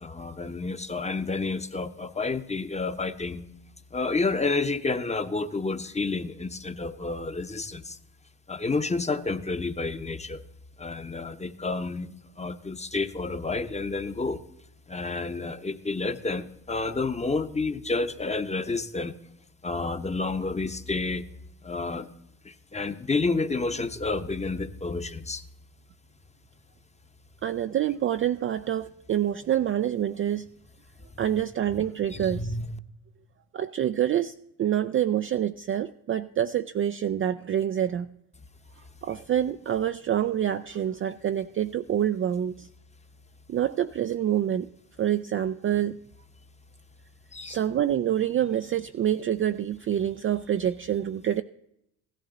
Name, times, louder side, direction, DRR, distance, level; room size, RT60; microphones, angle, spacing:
voice 1, 0.0-3.4 3.9-8.0 8.5-10.4 10.8-14.4 14.9-19.1 19.6-21.3 21.6-22.1 22.4-25.4 32.1-32.7 47.3-47.6, left 3 dB, 15° left, 10 dB, 0.9 m, -30 dB
voice 2, 27.4-30.5 31.2-32.6 33.5-34.3 34.6-38.1 39.0-42.7 43.5-44.7 45.0-46.0 47.5-51.4, right 10 dB, 30° right, 10 dB, 0.4 m, -26 dB
15.5 x 11.5 x 3.9 m, 0.81 s
hypercardioid pair, 65°, 43 cm